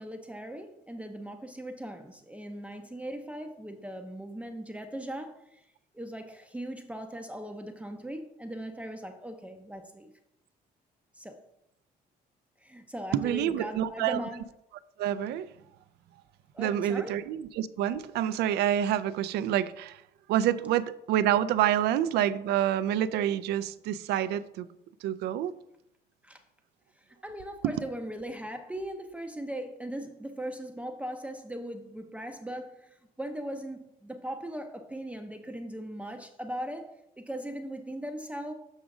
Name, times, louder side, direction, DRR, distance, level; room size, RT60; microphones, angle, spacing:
voice 1, 0.0-5.6 5.9-10.1 11.1-11.4 12.6-14.4 16.5-17.1 26.2-26.4 27.0-38.5, right 1 dB, 5° right, 0.6 m, -39 dB
voice 2, 13.1-14.2 15.0-15.5 16.6-20.0 20.3-24.7 25.0-25.5, right 11 dB, 75° right, 0.4 m, -27 dB
7.3 x 4.9 x 3.7 m
cardioid pair, 110°, 17 cm